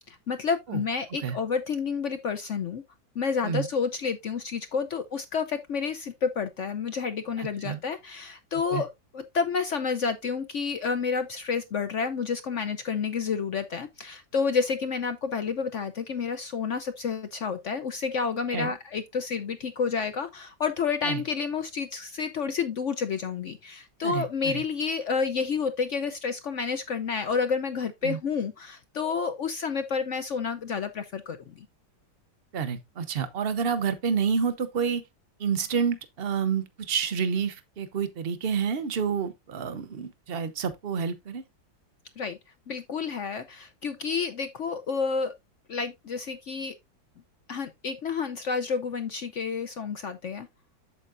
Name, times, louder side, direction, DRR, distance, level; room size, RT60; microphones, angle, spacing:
voice 1, 0.0-2.8 3.2-31.7 42.2-42.4 42.7-45.3 45.7-46.7 47.5-50.5, left 5 dB, 65° left, 0.7 m, -30 dB
voice 2, 7.4-7.8 8.7-8.8 18.5-18.8 21.0-21.2 24.0-24.6 28.0-28.2 32.5-35.0 35.4-41.4, right 6 dB, 40° right, 0.9 m, -29 dB
8.3 x 7.6 x 2.5 m
omnidirectional pair, 2.0 m